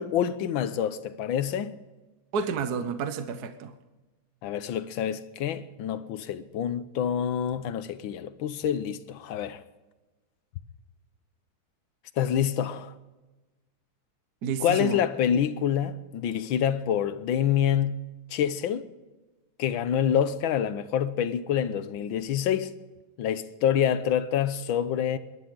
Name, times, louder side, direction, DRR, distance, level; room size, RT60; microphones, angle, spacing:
voice 1, 0.0-1.8 4.4-9.6 12.2-12.9 14.6-18.9 19.6-22.7 23.2-25.2, left 9 dB, 75° left, 1.5 m, -27 dB
voice 2, 2.3-3.7 14.4-15.0, right 6 dB, 55° right, 1.4 m, -30 dB
23.0 x 11.5 x 3.8 m
omnidirectional pair, 2.2 m